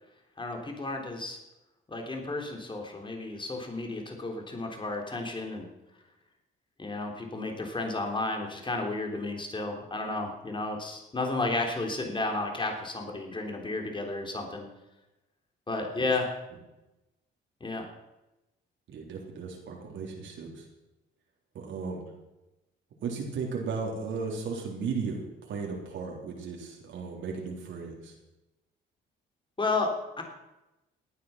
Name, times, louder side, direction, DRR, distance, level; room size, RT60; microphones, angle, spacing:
voice 1, 0.4-1.4 1.9-5.7 6.8-14.7 15.7-16.3 17.6-17.9 29.6-30.2, left 2 dB, 25° left, 3 dB, 3.5 m, -32 dB
voice 2, 18.9-20.6 21.5-22.0 23.0-28.1, right 5 dB, 75° right, -1 dB, 3.6 m, -35 dB
17.5 x 9.8 x 5.8 m, 0.98 s
cardioid pair, 90°, 20 cm